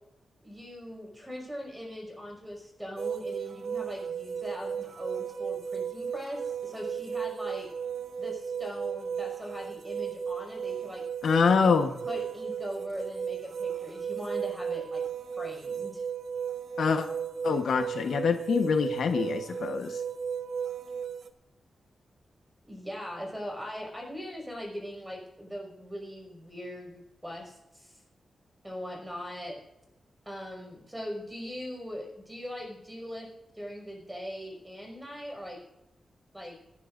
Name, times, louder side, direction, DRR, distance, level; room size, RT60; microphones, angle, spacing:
voice 1, 0.4-7.7 8.2-11.0 12.0-15.0 15.4-16.0 22.7-28.0 28.6-29.6 30.3-33.3 33.5-35.6 36.3-36.6, equal, 10° right, 0 dB, 5.5 m, -40 dB
sound 1, 3.0-21.3, right 7 dB, 70° right, 1.0 m, -35 dB
voice 2, 11.2-11.9 16.8-17.1 17.4-20.0, left 5 dB, 80° left, 6 dB, 1.2 m, -25 dB
26.0 x 11.0 x 2.6 m, 0.93 s
wide cardioid pair, 145°, 0 cm